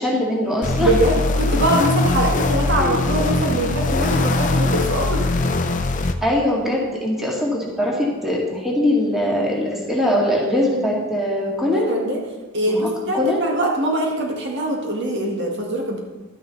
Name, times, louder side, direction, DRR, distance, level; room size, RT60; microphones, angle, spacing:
voice 1, 0.0-0.9 2.8-3.0 6.2-11.9 12.7-12.8 13.1-13.4, left 1 dB, ahead, -4 dB, 2.1 m, -21 dB
sound 1, 0.6-6.1, left 2 dB, 35° left, 0.7 m, -21 dB
voice 2, 0.8-5.2 11.7-12.2 12.5-16.0, right 1 dB, 55° right, 0 dB, 1.8 m, -22 dB
12.0 x 9.7 x 4.0 m, 1.2 s
head